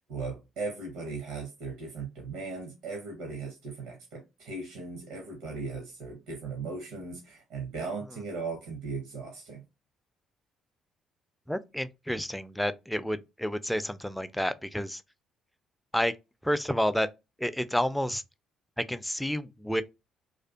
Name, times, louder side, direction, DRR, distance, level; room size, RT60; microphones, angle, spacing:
voice 1, 0.1-9.6, right 4 dB, 70° right, 0.6 m, -38 dB
voice 2, 11.5-15.0 15.9-16.1 16.4-17.1 17.4-18.2 18.8-19.8, equal, 5° left, 0.3 m, -30 dB
2.5 x 2.3 x 2.2 m
figure-of-eight pair, 45°, 0 cm